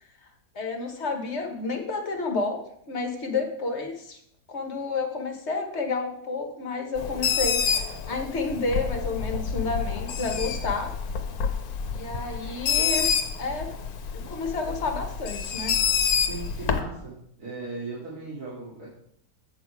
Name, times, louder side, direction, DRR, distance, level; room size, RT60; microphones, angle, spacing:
voice 1, 0.5-4.2 4.5-10.9 11.9-13.1 13.4-13.7 14.3-15.8, left 3 dB, 45° left, 4 dB, 1.3 m, -30 dB
Bird, 7.0-16.8, left 6 dB, 65° left, 1.3 m, -28 dB
voice 2, 16.3-18.9, right 3 dB, 65° right, -7 dB, 2.6 m, -38 dB
8.0 x 6.1 x 4.6 m, 0.69 s
omnidirectional pair, 1.8 m